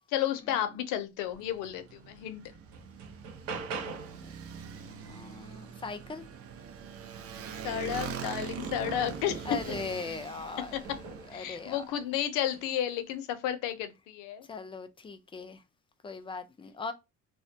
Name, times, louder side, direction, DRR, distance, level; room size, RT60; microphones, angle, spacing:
voice 1, 0.1-2.4 7.6-9.5 10.7-11.0 11.3-14.5, left 11 dB, 80° left, 0.5 m, -32 dB
Motorcycle, 1.3-12.0, right 7 dB, 50° right, 0.5 m, -43 dB
sound 1, 1.9-2.0 2.5-4.3 6.6-6.7 7.2-10.1 10.9-11.4 12.4-12.7, right 4 dB, 85° right, 0.7 m, -42 dB
voice 2, 5.0-6.3 9.5-11.8 14.5-15.6 16.0-16.9, left 4 dB, 15° left, 0.4 m, -40 dB
2.2 x 2.1 x 2.7 m
supercardioid pair, 85°, 31 cm